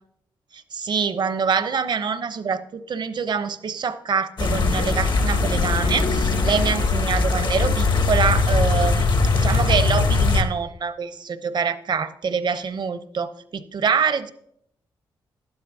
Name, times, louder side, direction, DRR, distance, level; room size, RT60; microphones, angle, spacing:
voice 1, 0.5-14.3, right 6 dB, 55° right, 12 dB, 0.8 m, -25 dB
sound 1, 4.4-10.4, left 3 dB, 55° left, 1.3 m, -20 dB
12.0 x 10.5 x 2.8 m, 0.71 s
supercardioid pair, 55°, 9 cm